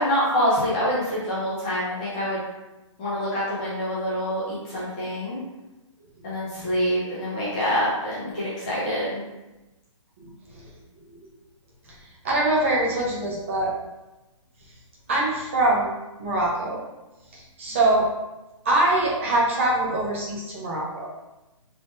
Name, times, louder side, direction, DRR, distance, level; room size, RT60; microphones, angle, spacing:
voice 1, 0.0-2.4 3.0-5.4 6.2-9.2, equal, 15° left, -9 dB, 0.5 m, -26 dB
voice 2, 10.2-10.7 11.1-11.2 12.2-13.7 15.1-15.9 16.2-16.8 17.3-18.1 18.6-21.1, right 2 dB, 25° right, -4 dB, 0.7 m, -23 dB
3.6 x 3.6 x 2.5 m, 1.0 s
hypercardioid pair, 175°, 17 cm